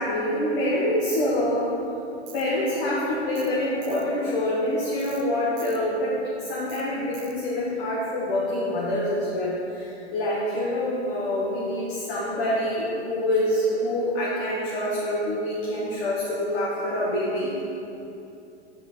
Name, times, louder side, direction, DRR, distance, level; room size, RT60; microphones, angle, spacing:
voice 1, 0.0-1.7 2.3-17.6, left 1 dB, 50° left, -7 dB, 1.5 m, -26 dB
Tools, 2.3-2.5 3.4-3.5 3.8-4.1 5.0-5.2 5.6-5.8 6.7-6.8 7.1-7.3, right 9 dB, 15° right, 0.4 m, -46 dB
7.5 x 4.7 x 4.3 m, 2.7 s
hypercardioid pair, 110°, 35 cm